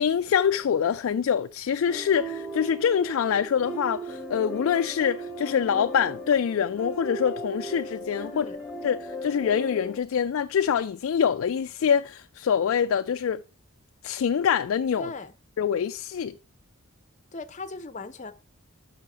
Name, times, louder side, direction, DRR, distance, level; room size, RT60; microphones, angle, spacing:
voice 1, 0.0-8.5 8.8-13.4 14.0-15.1 15.6-16.4, left 7 dB, 65° left, 0.3 m, -25 dB
sound 1, 1.8-10.0, right 1 dB, 5° right, 3.2 m, -37 dB
voice 2, 8.2-8.6 15.0-15.3 17.3-18.3, left 3 dB, 35° left, 0.7 m, -38 dB
6.2 x 5.6 x 5.6 m
head